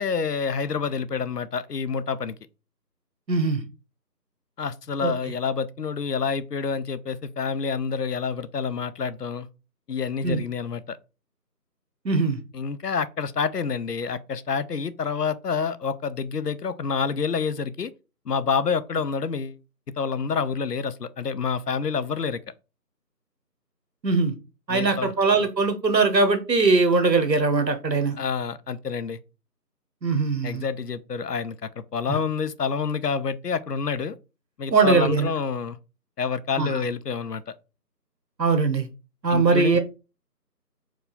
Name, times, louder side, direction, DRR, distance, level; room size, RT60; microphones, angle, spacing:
voice 1, 0.0-2.4 4.6-9.5 9.9-11.0 12.5-17.9 18.3-19.6 20.0-22.4 24.7-25.1 28.2-29.2 30.4-34.2 34.6-35.8 36.2-37.5 39.3-39.8, left 5 dB, 70° left, 0.6 m, -28 dB
voice 2, 3.3-3.6 5.0-5.1 10.2-10.4 12.0-12.4 24.0-24.3 24.7-28.2 30.0-30.7 32.1-32.2 34.7-35.3 36.6-36.8 38.4-38.9 39.2-39.8, right 4 dB, 80° right, 1.1 m, -21 dB
4.7 x 2.3 x 3.9 m
figure-of-eight pair, 180°, 50 cm